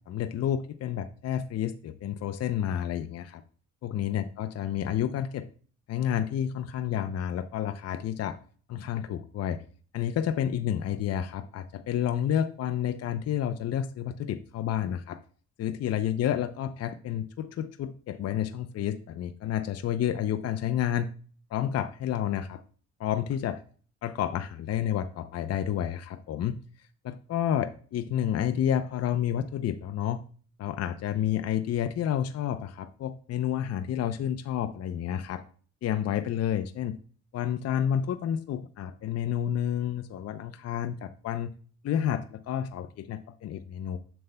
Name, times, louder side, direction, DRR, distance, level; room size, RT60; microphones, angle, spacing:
voice 1, 0.1-3.4 3.8-5.5 5.9-8.4 8.7-9.6 9.9-15.2 15.6-21.1 21.5-22.6 23.0-23.6 24.0-26.6 27.0-30.2 30.6-35.4 35.8-37.0 37.3-41.5 41.8-44.0, left 10 dB, 55° left, 10 dB, 0.6 m, -30 dB
7.6 x 6.7 x 2.2 m, 0.43 s
cardioid pair, 90°, 30 cm